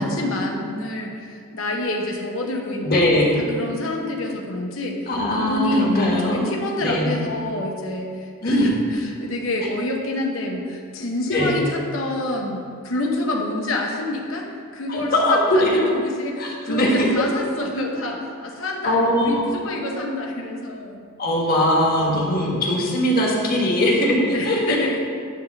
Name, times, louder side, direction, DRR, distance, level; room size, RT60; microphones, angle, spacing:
voice 1, 0.0-3.0 3.5-5.1 5.4-5.9 6.2-14.5 14.7-21.0 24.3-25.0, left 2 dB, 70° left, 0 dB, 1.0 m, -27 dB
voice 2, 2.8-3.4 5.1-6.5 6.8-7.1 8.4-8.7 11.3-11.6 14.9-15.9 16.4-17.1 18.8-19.4 21.2-24.9, left 1 dB, 45° left, -3 dB, 1.7 m, -20 dB
10.5 x 3.7 x 6.9 m, 2.2 s
head